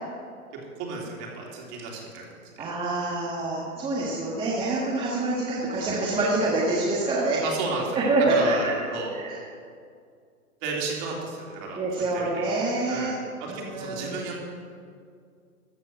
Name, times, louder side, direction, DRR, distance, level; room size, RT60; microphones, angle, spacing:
voice 1, 0.7-2.2 2.6-2.7 4.0-4.2 7.4-9.1 10.6-12.4 12.9-13.1 13.4-14.4, right 3 dB, 30° right, -1 dB, 3.1 m, -33 dB
voice 2, 2.6-7.4 7.9-8.7 9.1-9.3 11.7-13.2 13.5-14.1, right 2 dB, 10° right, -6 dB, 1.5 m, -26 dB
14.0 x 7.3 x 7.6 m, 2.2 s
hypercardioid pair, 150°, 44 cm